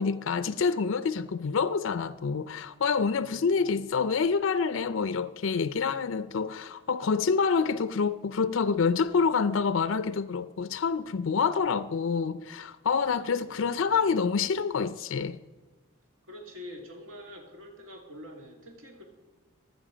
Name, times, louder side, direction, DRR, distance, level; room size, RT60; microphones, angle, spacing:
voice 1, 0.0-15.4, left 5 dB, 65° left, 0.4 m, -27 dB
voice 2, 3.2-3.8 13.5-14.1 16.3-19.0, left 1 dB, 70° right, 2.5 m, -46 dB
16.0 x 11.0 x 5.0 m
head